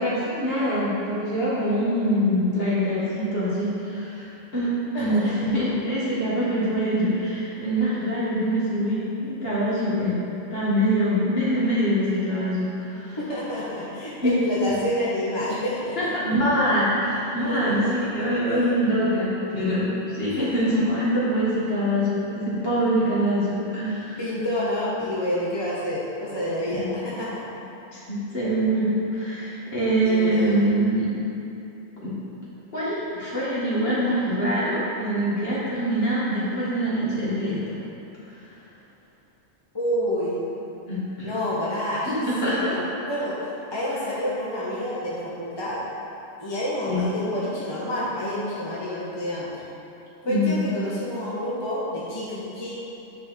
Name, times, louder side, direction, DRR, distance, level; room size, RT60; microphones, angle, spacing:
voice 1, 0.0-4.3 4.5-10.2 10.5-13.2 14.2-14.4 14.7-14.8 16.0-24.2 26.8-26.9 27.9-31.1 32.0-32.1 32.7-37.8 40.9-41.3 42.1-42.8 46.9-47.0 50.2-50.5, equal, 45° left, -9 dB, 2.0 m, -24 dB
voice 2, 4.9-5.3 12.9-16.0 17.2-17.9 18.5-18.6 19.0-19.1 20.2-20.7 24.2-27.4 30.0-30.6 39.7-40.4 41.2-43.4 43.7-45.8 46.4-49.5 50.2-52.8, left 1 dB, 20° left, -8 dB, 1.0 m, -28 dB
9.2 x 4.6 x 3.7 m, 2.8 s
omnidirectional pair, 1.4 m